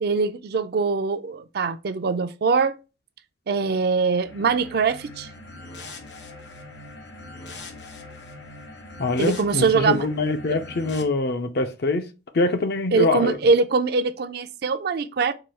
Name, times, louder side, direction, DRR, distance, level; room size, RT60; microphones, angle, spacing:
voice 1, 0.0-2.7 3.5-5.3 9.2-10.0 12.9-15.3, right 4 dB, 60° right, 0.4 m, -22 dB
sound 1, 4.2-11.0, left 2 dB, 85° left, 0.9 m, -41 dB
voice 2, 9.0-12.1 12.3-13.4, left 3 dB, 65° left, 0.6 m, -24 dB
4.9 x 2.3 x 4.2 m
head